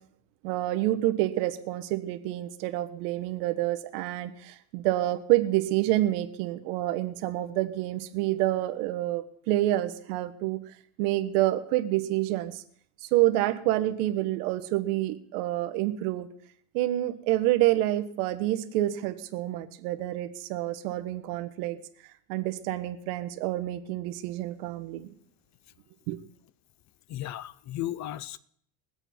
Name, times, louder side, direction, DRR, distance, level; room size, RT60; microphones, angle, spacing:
voice 1, 0.4-10.6 11.0-12.6 13.1-16.3 16.7-21.8 22.3-25.1 26.1-26.2, right 15 dB, 80° right, 1.3 m, -28 dB
voice 2, 27.1-28.4, left 13 dB, 40° left, 0.7 m, -35 dB
22.0 x 8.0 x 4.3 m
supercardioid pair, 120°, 45 cm